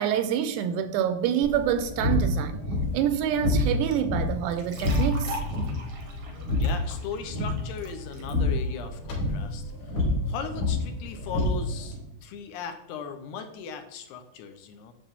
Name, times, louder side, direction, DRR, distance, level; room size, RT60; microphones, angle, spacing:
voice 1, 0.0-2.6 2.9-5.4, right 9 dB, 85° right, 2.6 m, -26 dB
sound 1, 1.4-12.0, left 2 dB, 55° left, 4.1 m, -28 dB
sound 2, 4.5-8.3, right 1 dB, 65° right, 1.3 m, -41 dB
voice 2, 6.6-10.0 10.3-14.9, left 6 dB, 75° left, 2.7 m, -38 dB
9.8 x 7.4 x 3.5 m
omnidirectional pair, 5.0 m